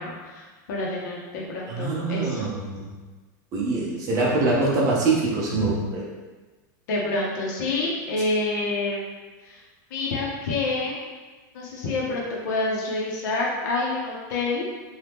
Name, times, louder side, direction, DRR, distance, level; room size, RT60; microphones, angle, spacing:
voice 1, 0.0-2.5 5.5-5.8 6.9-9.1 9.4-9.6 9.9-11.0 11.5-14.6, left 2 dB, 70° left, -3 dB, 0.8 m, -28 dB
voice 2, 1.7-2.9 3.5-6.0, right 3 dB, 30° right, -5 dB, 0.7 m, -24 dB
2.8 x 2.4 x 3.4 m, 1.3 s
supercardioid pair, 155°, 10 cm